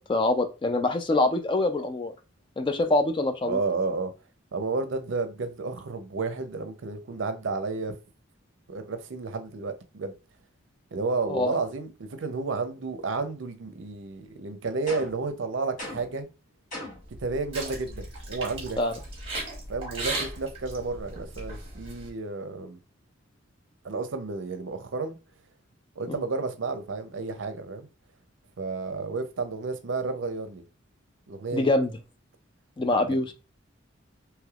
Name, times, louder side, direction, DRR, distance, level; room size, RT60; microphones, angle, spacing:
voice 1, 0.0-2.1 2.6-3.6 11.3-11.5 18.8-18.9 26.1-26.2 31.5-31.9 32.8-33.3, left 2 dB, 25° left, 0.3 m, -25 dB
voice 2, 3.4-4.1 4.5-7.9 8.7-10.1 10.9-11.9 12.2-16.3 17.2-18.8 19.7-22.8 23.8-25.2 26.0-27.9 28.6-30.6 31.3-31.7 33.1-33.3, right 3 dB, 70° right, 0.5 m, -31 dB
sound 1, 14.9-15.3 15.8-16.2 16.7-17.1, left 1 dB, 45° left, 1.3 m, -39 dB
sound 2, 17.0-22.1, right 2 dB, 30° right, 1.2 m, -37 dB
3.3 x 3.0 x 2.3 m
head